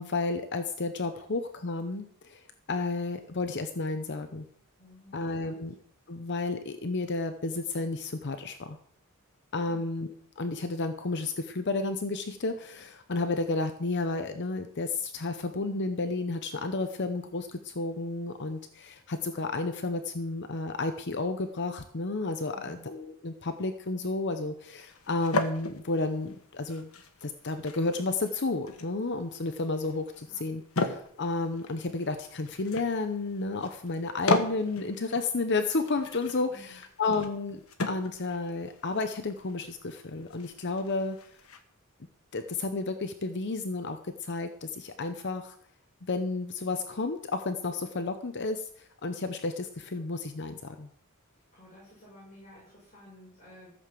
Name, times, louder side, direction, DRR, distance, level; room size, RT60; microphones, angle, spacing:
voice 1, 0.0-4.5 5.1-5.7 6.1-8.8 9.5-26.9 27.2-41.2 42.3-45.6 46.0-50.9, left 3 dB, 50° left, 8 dB, 0.8 m, -32 dB
voice 2, 4.8-5.6 9.6-9.9 22.5-22.9 30.3-30.4 36.5-36.8 51.5-53.7, left 1 dB, 35° left, -7 dB, 6.5 m, -52 dB
sound 1, 24.9-41.6, left 2 dB, 75° left, 1.5 m, -37 dB
14.5 x 6.8 x 7.6 m, 0.64 s
head